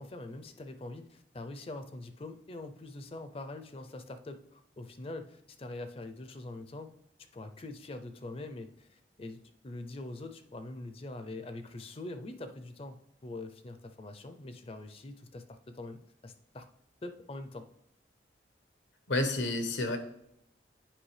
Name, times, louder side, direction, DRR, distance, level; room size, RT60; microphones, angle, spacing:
voice 1, 0.0-6.9 7.3-16.7 17.0-17.7, left 2 dB, 30° left, 8 dB, 0.5 m, -44 dB
voice 2, 19.1-20.0, left 2 dB, 90° left, 7 dB, 1.1 m, -30 dB
8.8 x 5.1 x 3.3 m, 0.77 s
head